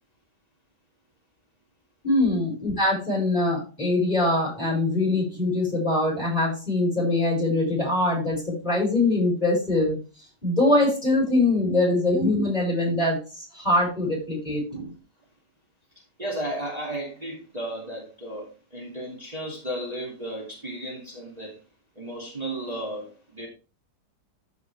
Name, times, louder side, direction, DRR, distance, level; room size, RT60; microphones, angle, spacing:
voice 1, 2.0-10.1 10.4-14.6, left 2 dB, 25° left, 6.1 m, -23 dB
voice 2, 16.2-21.6 22.0-23.5, right 1 dB, 20° right, 2.6 m, -34 dB
14.0 x 5.4 x 3.4 m
omnidirectional pair, 1.9 m